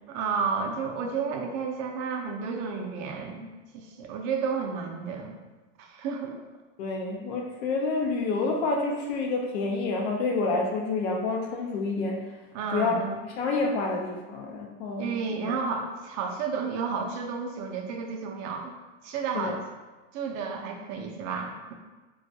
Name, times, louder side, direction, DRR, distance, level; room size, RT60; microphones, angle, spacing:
voice 1, 0.1-5.3 5.8-6.4 12.5-13.2 15.0-18.8 19.0-19.6 20.1-21.7, right 5 dB, 50° right, 2 dB, 0.5 m, -32 dB
voice 2, 6.8-12.4 12.7-15.1 15.5-15.6 19.3-19.6, left 3 dB, 75° left, 1 dB, 0.6 m, -28 dB
2.3 x 2.1 x 2.6 m, 1.2 s
supercardioid pair, 115°, 33 cm